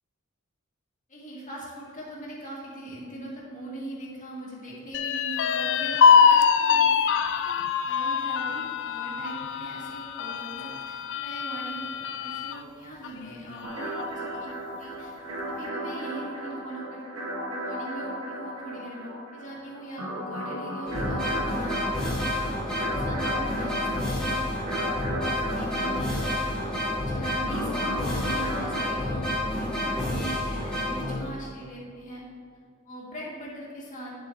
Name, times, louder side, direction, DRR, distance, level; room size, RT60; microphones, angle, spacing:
voice 1, 1.1-7.2 7.4-7.6 7.8-17.3 17.6-24.6 25.6-32.2 32.8-34.1, right 1 dB, 35° left, -6 dB, 2.3 m, -41 dB
sound 1, 4.9-12.6 13.0-13.1 13.5-14.2, left 6 dB, 60° left, 0.4 m, -23 dB
sound 2, 13.6-28.8, equal, 70° right, 1.6 m, -35 dB
sound 3, 20.9-31.5, left 1 dB, 5° left, 2.2 m, -29 dB
9.7 x 7.7 x 3.0 m, 2.1 s
head